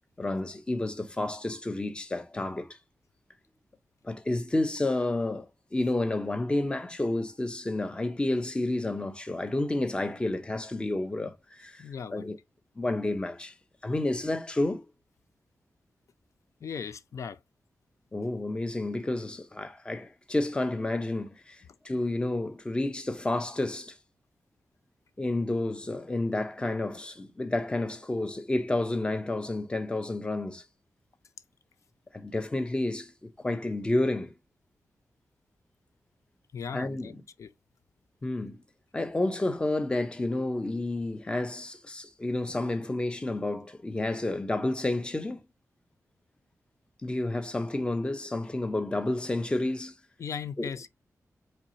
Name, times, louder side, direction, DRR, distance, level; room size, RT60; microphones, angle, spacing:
voice 1, 0.2-2.8 4.0-11.8 12.1-12.4 12.8-13.5 13.8-14.8 18.1-24.0 25.2-30.6 32.1-34.3 36.7-37.2 38.2-38.6 38.9-45.4 47.0-49.9 50.6-50.7, left 2 dB, 15° left, 0.6 m, -30 dB
voice 2, 11.8-12.4 16.6-17.4 36.5-37.1 37.4-37.5 50.2-50.9, left 6 dB, 60° left, 0.5 m, -37 dB
4.5 x 4.0 x 2.7 m
wide cardioid pair, 165°, 6 cm